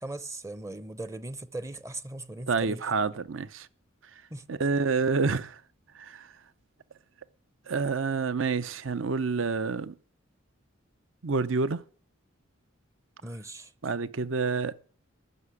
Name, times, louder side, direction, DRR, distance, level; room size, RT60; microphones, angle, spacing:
voice 1, 0.0-2.8 4.3-4.5 13.2-13.7, right 2 dB, 15° right, 0.6 m, -39 dB
voice 2, 2.5-3.7 4.5-5.6 5.9-6.3 7.7-9.9 11.2-11.8 13.8-14.7, right 4 dB, 70° right, 0.7 m, -28 dB
15.0 x 6.7 x 9.8 m
head